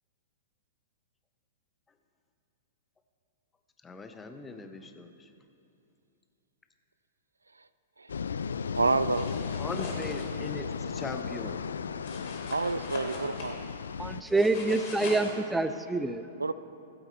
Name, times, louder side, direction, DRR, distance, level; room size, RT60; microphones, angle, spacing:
voice 1, 3.8-5.1 9.6-11.6, left 3 dB, 15° left, 7 dB, 0.8 m, -39 dB
sound 1, 8.1-14.2, left 6 dB, 75° left, 0.3 m, -35 dB
voice 2, 8.7-9.3 12.5-13.6 16.4-16.5, right 3 dB, 85° right, 15 dB, 0.3 m, -28 dB
sound 2, 9.0-10.5 12.0-13.5 14.3-15.3, left 3 dB, 50° left, 2.8 m, -41 dB
voice 3, 14.0-16.3, right 2 dB, 5° right, 12 dB, 0.5 m, -27 dB
15.5 x 8.0 x 4.4 m, 2.6 s
figure-of-eight pair, 105°, 0 cm